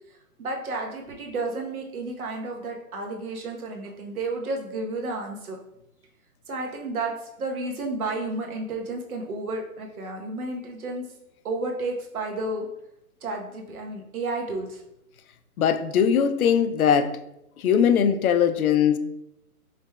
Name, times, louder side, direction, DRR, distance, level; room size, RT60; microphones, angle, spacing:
voice 1, 0.4-5.6 6.5-11.0 11.4-12.7 13.2-14.8, right 2 dB, 70° right, 1 dB, 1.1 m, -31 dB
voice 2, 15.6-17.2 17.6-19.0, left 8 dB, 75° left, 10 dB, 0.5 m, -20 dB
5.1 x 3.3 x 2.3 m, 0.84 s
hypercardioid pair, 175°, 44 cm